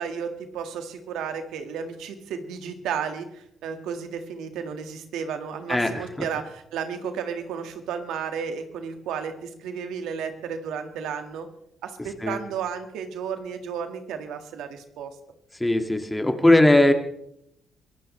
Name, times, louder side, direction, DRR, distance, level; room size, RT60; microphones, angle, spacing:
voice 1, 0.0-11.5 11.8-15.1, right 7 dB, 90° right, 6 dB, 1.8 m, -33 dB
voice 2, 5.7-6.1 12.2-12.4 15.6-16.9, left 1 dB, 10° left, 5 dB, 2.1 m, -19 dB
24.5 x 16.5 x 3.3 m, 0.75 s
cardioid pair, 90°, 0 cm